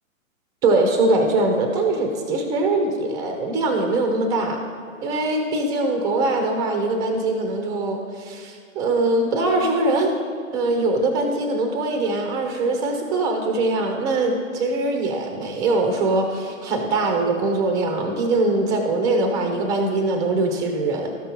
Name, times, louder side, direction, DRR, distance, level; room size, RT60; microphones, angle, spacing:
voice 1, 0.6-4.6 5.0-10.1 10.5-21.1, right 2 dB, 10° right, 4 dB, 0.4 m, -22 dB
13.0 x 5.5 x 4.4 m, 2.4 s
figure-of-eight pair, 120°, 40 cm